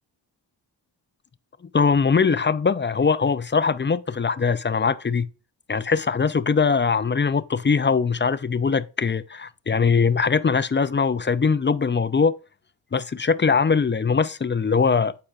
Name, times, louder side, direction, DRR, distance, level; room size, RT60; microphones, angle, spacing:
voice 1, 1.7-5.3 5.7-12.3 12.9-15.2, left 5 dB, 25° left, 0.4 m, -21 dB
8.7 x 4.5 x 2.4 m
cardioid pair, 45°, 44 cm